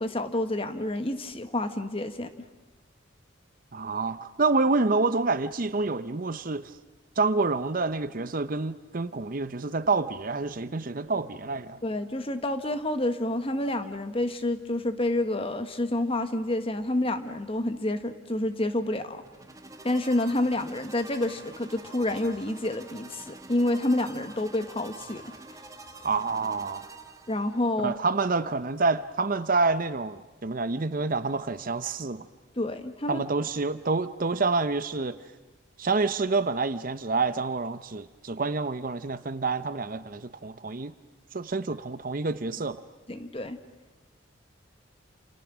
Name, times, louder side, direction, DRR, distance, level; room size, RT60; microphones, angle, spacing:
voice 1, 0.0-2.3 11.8-19.2 19.8-25.3 27.3-27.9 32.6-33.2 43.1-43.6, left 1 dB, 30° left, 9 dB, 1.3 m, -28 dB
voice 2, 3.7-6.7 7.2-11.8 26.0-26.8 27.8-32.3 33.1-35.2 35.8-40.9 41.3-42.8, right 3 dB, 45° right, 13 dB, 0.7 m, -28 dB
sound 1, 19.2-27.7, right 2 dB, 15° right, 1.5 m, -47 dB
29.0 x 28.5 x 6.2 m, 1.2 s
head